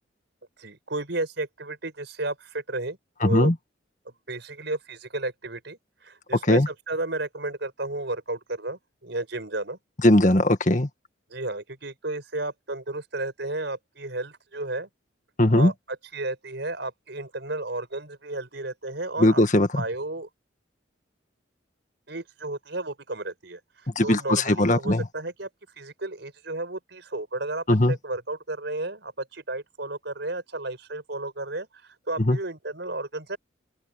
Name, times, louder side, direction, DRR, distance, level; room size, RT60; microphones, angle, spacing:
voice 1, 0.6-3.5 4.1-9.8 11.3-14.9 15.5-19.4 19.7-20.3 22.1-23.6 24.0-25.5 25.8-33.4, right 2 dB, 65° right, 4.8 m, -33 dB
voice 2, 3.2-3.5 6.5-6.7 10.0-10.9 15.4-15.7 19.2-19.8 24.0-25.0 27.7-27.9 32.2-32.4, left 1 dB, 40° left, 1.8 m, -19 dB
open air
head